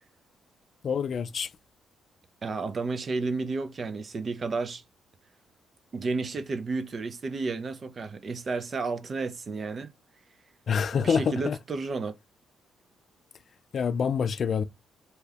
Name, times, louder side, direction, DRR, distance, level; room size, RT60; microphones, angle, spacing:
voice 1, 0.8-1.5 10.7-11.6 13.7-14.6, left 6 dB, 50° left, 0.3 m, -26 dB
voice 2, 2.4-4.8 5.9-9.9 10.9-12.2, right 3 dB, 40° right, 0.5 m, -32 dB
2.7 x 2.3 x 3.3 m
cardioid pair, 90°, 0 cm